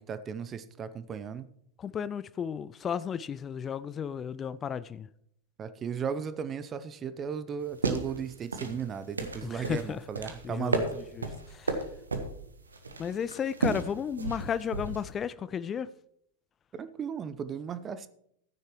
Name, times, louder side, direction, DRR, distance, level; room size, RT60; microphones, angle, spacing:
voice 1, 0.0-1.5 5.6-10.8 16.7-18.1, right 7 dB, 25° right, 0.6 m, -36 dB
voice 2, 1.8-5.1 9.5-10.0 10.4-10.8 11.2-11.3 11.5-11.8 13.0-15.9, left 7 dB, 25° left, 0.4 m, -33 dB
sound 1, 7.6-15.1, right 3 dB, 75° right, 1.3 m, -34 dB
14.5 x 9.5 x 3.1 m
figure-of-eight pair, 90°, 0 cm